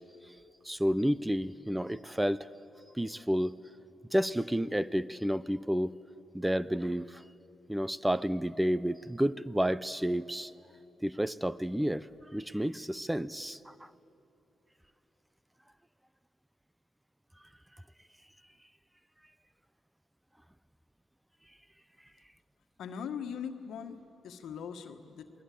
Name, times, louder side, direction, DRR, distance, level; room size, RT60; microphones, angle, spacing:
voice 1, 0.6-2.5 2.9-3.5 4.1-5.9 6.3-7.2 7.7-10.5 11.0-13.9, equal, 5° right, 17 dB, 0.7 m, -30 dB
voice 2, 22.8-25.3, left 7 dB, 80° left, 7 dB, 1.5 m, -40 dB
28.0 x 20.5 x 8.5 m, 2.9 s
supercardioid pair, 60°, 0 cm